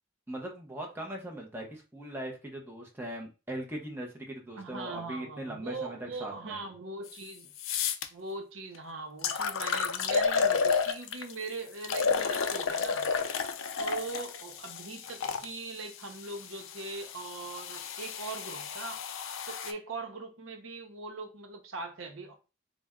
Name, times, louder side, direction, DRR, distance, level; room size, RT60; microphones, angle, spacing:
voice 1, 0.3-6.6, right 1 dB, 10° right, 0.7 m, -40 dB
voice 2, 4.6-7.5 8.1-13.1 13.8-19.0 19.5-22.4, right 3 dB, 80° right, 0.7 m, -41 dB
sound 1, 7.1-7.2 7.6-8.1 8.7-8.8 9.2-11.3 11.8-15.5 16.3-19.7, left 5 dB, 75° left, 0.4 m, -31 dB
4.1 x 2.1 x 3.5 m
head